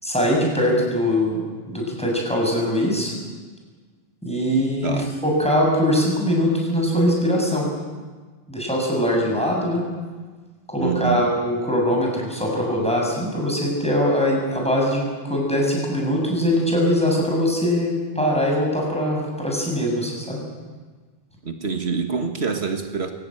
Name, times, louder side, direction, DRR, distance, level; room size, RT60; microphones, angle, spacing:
voice 1, 0.0-3.1 4.2-7.7 8.5-9.8 10.7-20.4, equal, 5° left, -2 dB, 7.5 m, -22 dB
voice 2, 4.8-5.1 10.8-11.3 21.4-23.1, right 5 dB, 80° right, 5 dB, 2.0 m, -26 dB
24.0 x 17.5 x 9.2 m, 1.4 s
omnidirectional pair, 1.1 m